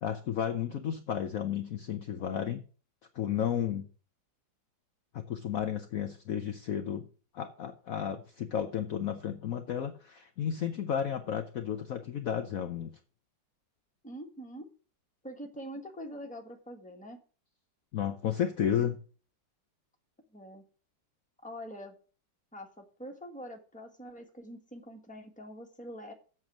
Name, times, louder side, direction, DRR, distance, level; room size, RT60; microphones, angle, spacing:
voice 1, 0.0-2.6 3.1-3.9 5.1-7.1 7.3-12.9 17.9-19.0, left 9 dB, 60° left, 7 dB, 1.0 m, -32 dB
voice 2, 14.0-14.7 15.2-17.2 20.3-20.6 21.4-21.9 22.5-26.1, equal, 5° left, 2 dB, 1.5 m, -44 dB
8.0 x 7.1 x 6.2 m, 0.38 s
omnidirectional pair, 2.0 m